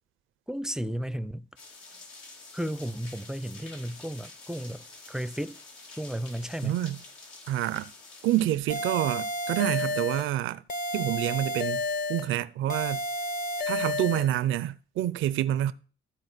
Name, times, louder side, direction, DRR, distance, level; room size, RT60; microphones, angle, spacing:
voice 1, 0.5-1.5 2.5-5.6 6.0-6.8, equal, 5° right, 0.4 m, -34 dB
sound 1, 1.6-8.6, left 3 dB, 90° left, 2.4 m, -48 dB
voice 2, 6.6-7.0 7.5-7.9 8.2-10.6 10.9-11.8 12.1-13.0 13.7-15.7, right 13 dB, 80° right, 0.5 m, -27 dB
sound 2, 8.7-10.3 10.7-12.3 12.7-14.3, left 1 dB, 45° left, 0.9 m, -31 dB
13.0 x 4.5 x 6.5 m
cardioid pair, 90°, 20 cm